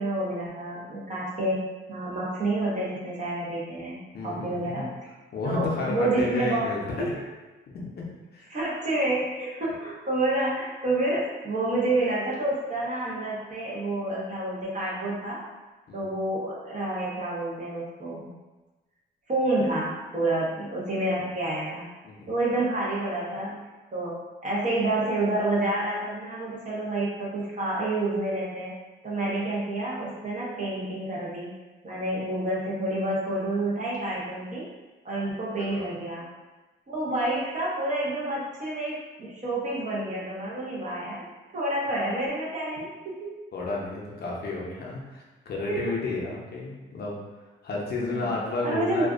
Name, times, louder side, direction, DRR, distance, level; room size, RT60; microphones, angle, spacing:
voice 1, 0.0-1.6 1.9-4.0 4.2-4.9 5.4-7.1 8.5-15.4 15.9-18.3 19.3-21.9 22.3-28.7 29.0-31.5 31.8-34.7 35.0-36.2 36.9-41.2 41.5-43.3 45.7-46.0 48.1-49.1, right 2 dB, 40° right, -6 dB, 0.9 m, -29 dB
voice 2, 4.1-4.9 5.3-6.8 7.7-8.5 15.9-16.1 22.0-22.3 35.6-35.9 43.5-47.2 47.6-49.1, left 3 dB, 55° left, -3 dB, 0.6 m, -32 dB
2.4 x 2.3 x 2.4 m, 1.2 s
cardioid pair, 90°, 20 cm